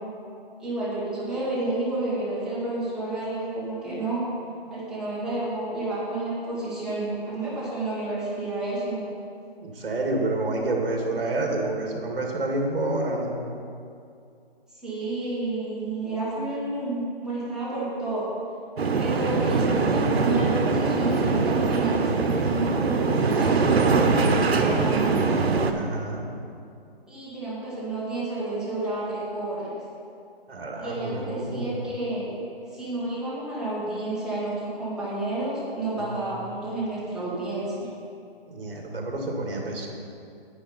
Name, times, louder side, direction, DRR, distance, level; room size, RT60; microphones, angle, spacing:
voice 1, 0.6-4.2 4.7-9.1 14.8-18.3 19.0-25.3 27.1-29.7 30.8-32.3 32.7-37.9, right 2 dB, ahead, -11 dB, 1.7 m, -30 dB
voice 2, 9.6-13.3 25.7-26.2 30.5-31.8 36.0-36.3 38.5-39.9, right 2 dB, 60° right, 0 dB, 2.3 m, -29 dB
sound 1, 18.8-25.7, right 4 dB, 85° right, 1.0 m, -22 dB
9.7 x 9.2 x 4.2 m, 2.5 s
hypercardioid pair, 165°, 31 cm